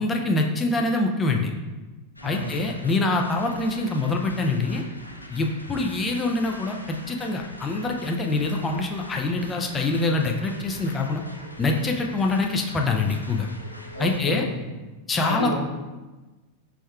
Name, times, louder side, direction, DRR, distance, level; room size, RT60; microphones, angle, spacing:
voice 1, 0.0-1.5 2.2-4.8 5.3-11.2 11.6-13.5 14.0-14.5 15.1-15.5, left 2 dB, 20° left, 2 dB, 0.4 m, -25 dB
sound 1, 2.2-14.2, equal, 85° left, 0.3 m, -43 dB
voice 2, 2.2-2.6 13.9-14.7 15.2-15.5, equal, 85° right, -8 dB, 1.5 m, -32 dB
5.1 x 3.4 x 2.3 m, 1.2 s
figure-of-eight pair, 90°, 0 cm